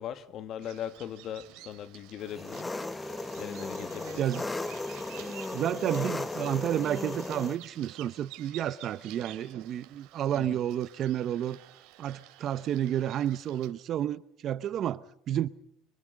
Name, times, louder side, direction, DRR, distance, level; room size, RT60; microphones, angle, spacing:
voice 1, 0.0-2.8 3.4-4.4 10.3-10.6, left 10 dB, 55° left, 1.3 m, -40 dB
Bird vocalization bird call bird song, 0.6-13.7, right 15 dB, 75° right, 2.5 m, -51 dB
Engine, 2.3-7.6, left 2 dB, 15° left, 0.9 m, -36 dB
voice 2, 5.5-11.6 12.0-15.5, right 11 dB, 50° right, 0.8 m, -31 dB
25.5 x 23.0 x 5.2 m
supercardioid pair, 95°, 0 cm